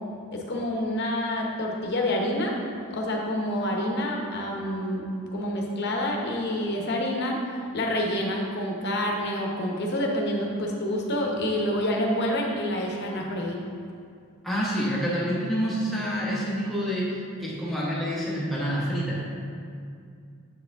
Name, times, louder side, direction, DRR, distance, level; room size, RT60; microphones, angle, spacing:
voice 1, 0.3-2.6 2.9-5.1 5.3-7.4 7.7-13.6, left 1 dB, 50° left, 0 dB, 0.8 m, -27 dB
voice 2, 14.4-19.2, equal, ahead, -7 dB, 1.0 m, -27 dB
7.4 x 4.9 x 3.4 m, 2.3 s
head